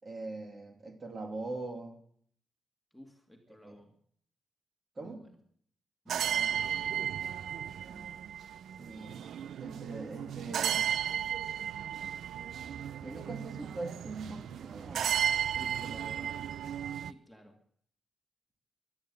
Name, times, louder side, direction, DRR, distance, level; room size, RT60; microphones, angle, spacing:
voice 1, 0.0-2.0 3.6-3.8 5.0-5.2 7.8-8.2 8.8-11.0 13.0-15.2 15.5-16.4, right 3 dB, 35° right, 3 dB, 2.9 m, -42 dB
voice 2, 2.9-3.9 5.0-5.4 6.0-7.1 17.0-17.6, equal, ahead, 2 dB, 2.2 m, -54 dB
sound 1, 6.1-17.1, right 9 dB, 80° right, 0.5 m, -34 dB
16.0 x 11.5 x 6.8 m, 0.63 s
cardioid pair, 115°, 0 cm